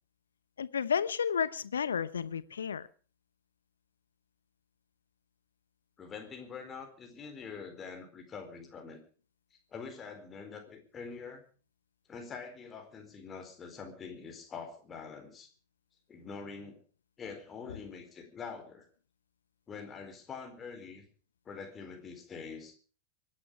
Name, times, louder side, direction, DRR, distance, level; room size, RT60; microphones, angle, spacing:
voice 1, 0.6-2.9, left 7 dB, 70° left, 18 dB, 0.9 m, -32 dB
voice 2, 6.0-9.0 9.7-11.4 12.1-15.5 16.1-16.8 17.2-18.9 19.7-21.1 21.5-22.8, left 5 dB, 25° left, 5 dB, 4.3 m, -45 dB
24.5 x 11.0 x 5.0 m, 0.40 s
figure-of-eight pair, 90°, 0 cm